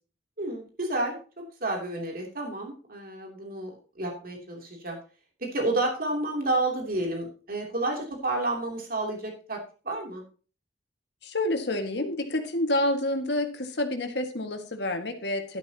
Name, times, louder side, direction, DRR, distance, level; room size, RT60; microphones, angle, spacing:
voice 1, 0.4-1.2 1.6-5.0 5.4-9.6 9.8-10.2, right 2 dB, 55° right, 1 dB, 3.0 m, -30 dB
voice 2, 11.2-15.6, left 1 dB, 70° left, 5 dB, 1.9 m, -28 dB
11.5 x 11.0 x 2.9 m, 0.35 s
head